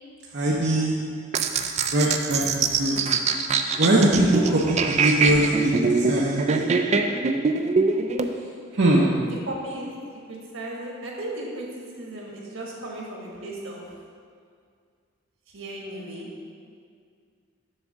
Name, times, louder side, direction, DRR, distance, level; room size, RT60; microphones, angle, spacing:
voice 1, 0.3-0.9 1.9-3.0 3.8-6.6 8.7-9.1, right 1 dB, 55° right, -4 dB, 0.7 m, -22 dB
sound 1, 1.3-8.3, right 4 dB, 35° right, 0.3 m, -23 dB
voice 2, 4.0-4.5 9.2-9.9 10.3-13.8 15.5-16.3, right 1 dB, 85° right, -2 dB, 1.4 m, -36 dB
7.2 x 3.5 x 6.3 m, 2.2 s
head